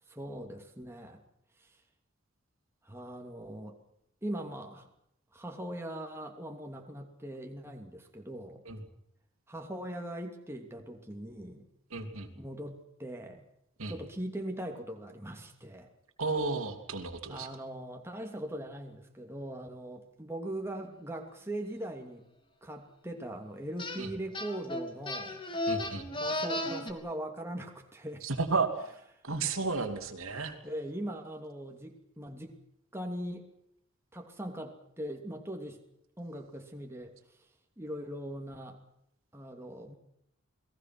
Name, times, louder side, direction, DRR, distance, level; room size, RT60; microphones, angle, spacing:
voice 1, 0.1-1.2 1.6-1.8 2.8-3.8 4.2-4.9 5.3-8.6 9.5-11.7 12.3-13.5 13.9-15.9 17.3-22.2 22.6-25.4 26.1-28.3 30.3-32.5 32.9-33.5 34.1-35.8 36.2-37.4 37.8-38.8 39.3-39.9, right 1 dB, 10° right, 2 dB, 2.9 m, -40 dB
voice 2, 11.9-12.3 13.8-13.9 16.2-17.5 24.0-24.1 25.7-26.0 28.2-28.7 29.2-30.5, right 4 dB, 75° right, 5 dB, 3.2 m, -32 dB
sound 1, 23.8-24.0 24.3-26.9, left 1 dB, 25° left, 3.0 m, -34 dB
29.0 x 20.5 x 6.2 m, 0.75 s
head